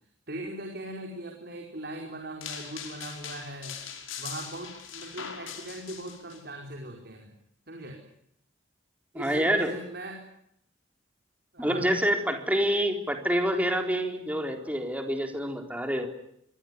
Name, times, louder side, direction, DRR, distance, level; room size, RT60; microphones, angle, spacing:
voice 1, 0.3-3.8 4.2-7.3 7.7-8.0 9.1-10.2 11.5-12.0, right 1 dB, 55° right, 1 dB, 4.9 m, -39 dB
sound 1, 2.4-6.4, left 7 dB, 85° left, 5.4 m, -41 dB
voice 2, 9.1-9.7 11.6-16.1, equal, 10° right, 4 dB, 4.0 m, -27 dB
26.0 x 23.5 x 9.6 m, 0.73 s
head